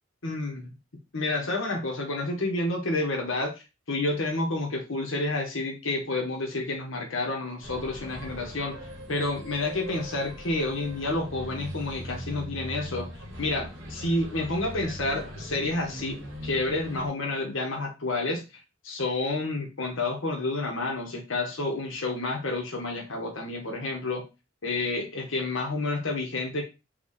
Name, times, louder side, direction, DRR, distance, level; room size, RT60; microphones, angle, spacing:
voice 1, 0.2-0.6 1.1-3.5 3.9-8.8 9.1-13.1 13.4-16.2 16.4-18.4 18.8-24.2 24.6-26.6, left 2 dB, 85° left, 1 dB, 1.3 m, -29 dB
sound 1, 7.6-17.1, equal, 85° right, 1.6 m, -40 dB
4.6 x 2.4 x 4.1 m, 0.27 s
head